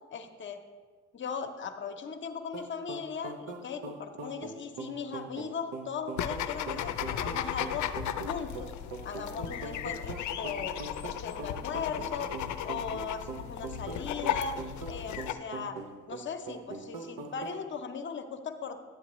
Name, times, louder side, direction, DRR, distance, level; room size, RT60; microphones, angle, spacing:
voice 1, 0.1-0.6 1.1-7.9 8.3-8.7 9.0-12.3 12.6-15.8 16.1-18.8, left 6 dB, 40° left, 7 dB, 0.8 m, -38 dB
sound 1, 2.5-17.6, right 3 dB, 90° right, 0.8 m, -42 dB
sound 2, 6.2-15.3, left 10 dB, 75° left, 0.5 m, -35 dB
10.0 x 7.3 x 3.0 m, 1.5 s
cardioid pair, 90°, 30 cm